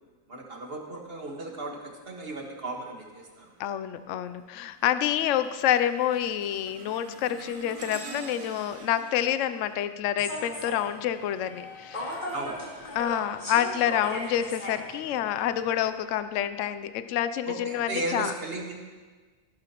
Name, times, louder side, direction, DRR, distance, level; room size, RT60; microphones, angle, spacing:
voice 1, 0.3-3.8 12.3-12.6 17.5-18.7, right 2 dB, 45° right, 1 dB, 1.8 m, -36 dB
sound 1, 3.2-3.6 4.1-10.9 12.2-14.4 15.0-15.2 16.1-16.2, right 4 dB, 65° right, 1.3 m, -47 dB
voice 2, 3.6-12.3 12.9-18.3, left 11 dB, 70° left, 12 dB, 0.9 m, -28 dB
Human voice / Subway metro underground, 10.2-15.9, equal, 35° left, 2.6 m, -38 dB
15.5 x 12.0 x 3.0 m, 1.4 s
omnidirectional pair, 1.4 m